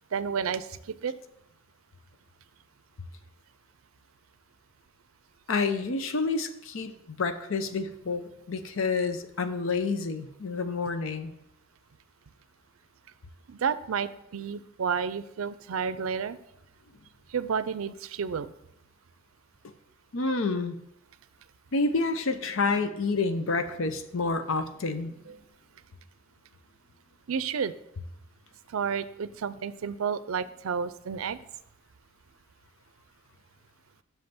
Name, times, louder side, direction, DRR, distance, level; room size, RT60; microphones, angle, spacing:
voice 1, 0.1-0.7 1.0-1.1 13.5-16.4 17.3-18.5 27.3-27.7 28.7-31.4, right 6 dB, 90° right, 15 dB, 0.5 m, -31 dB
voice 2, 5.5-11.3 20.1-20.8 21.7-25.1, left 3 dB, 70° left, 9 dB, 0.7 m, -29 dB
6.3 x 5.3 x 5.8 m, 0.79 s
head